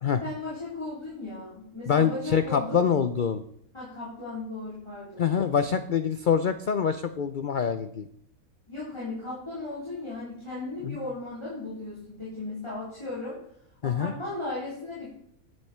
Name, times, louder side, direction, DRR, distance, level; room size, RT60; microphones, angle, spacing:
voice 1, 0.2-2.8 3.7-5.2 8.7-13.4 13.8-15.1, left 2 dB, 20° left, -9 dB, 4.1 m, -36 dB
voice 2, 1.9-3.4 5.2-8.1 10.8-11.0 13.8-14.1, left 7 dB, 55° left, 10 dB, 0.5 m, -25 dB
10.5 x 9.3 x 4.4 m, 0.70 s
omnidirectional pair, 1.5 m